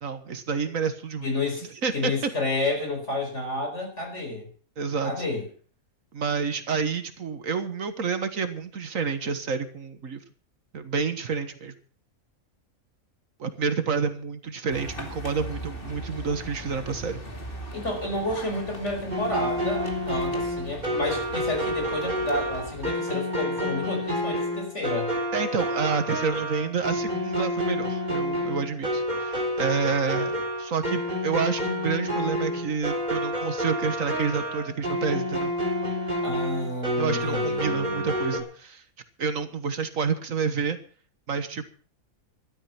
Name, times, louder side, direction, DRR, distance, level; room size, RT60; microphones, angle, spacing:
voice 1, 0.0-1.3 1.8-2.3 4.8-5.2 6.1-10.2 10.7-11.7 13.4-17.2 25.3-35.5 37.0-38.8 39.2-40.8 41.3-41.7, right 5 dB, 70° right, 9 dB, 1.8 m, -29 dB
voice 2, 1.2-1.7 1.9-4.5 5.0-5.4 17.7-25.1 36.2-38.1, left 2 dB, 55° left, 2 dB, 5.1 m, -30 dB
sound 1, 14.7-22.9, equal, 40° left, 2.7 m, -39 dB
sound 2, 19.1-38.4, equal, 30° right, 3.3 m, -29 dB
13.5 x 12.0 x 5.8 m, 0.43 s
omnidirectional pair, 1.5 m